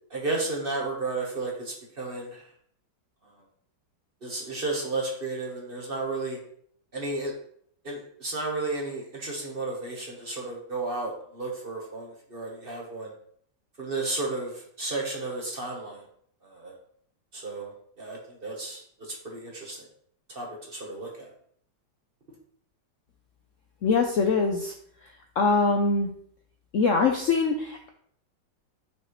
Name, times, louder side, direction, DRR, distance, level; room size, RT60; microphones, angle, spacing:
voice 1, 0.1-2.5 4.2-6.4 6.9-7.3 7.8-13.1 13.8-16.0 16.4-16.8 17.3-19.9 20.3-21.3, right 2 dB, 35° right, -1 dB, 1.3 m, -33 dB
voice 2, 23.8-24.7 25.4-26.1 26.7-27.9, left 4 dB, 65° left, 3 dB, 0.8 m, -23 dB
6.9 x 5.3 x 3.1 m, 0.64 s
omnidirectional pair, 1.9 m